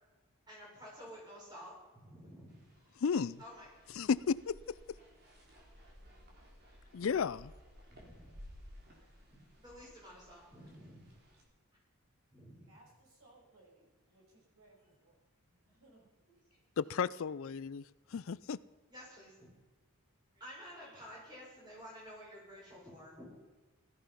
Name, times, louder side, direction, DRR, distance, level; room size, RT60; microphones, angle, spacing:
voice 1, 0.5-2.6 3.4-4.1 5.0-5.1 5.5-5.9 6.7-7.1 7.8-8.3 9.0-11.1 12.3-12.8 18.9-19.5 20.3-23.2, equal, 20° right, -4 dB, 6.5 m, -52 dB
sound 1, 2.5-11.4, equal, 45° right, 3.7 m, -57 dB
voice 2, 3.0-3.4 4.0-4.6 6.9-7.5 16.8-17.8 18.1-18.6, left 6 dB, 65° left, 19 dB, 0.4 m, -33 dB
voice 3, 12.7-16.4, right 2 dB, 70° right, -1 dB, 5.7 m, -65 dB
17.0 x 13.5 x 5.6 m, 1.2 s
head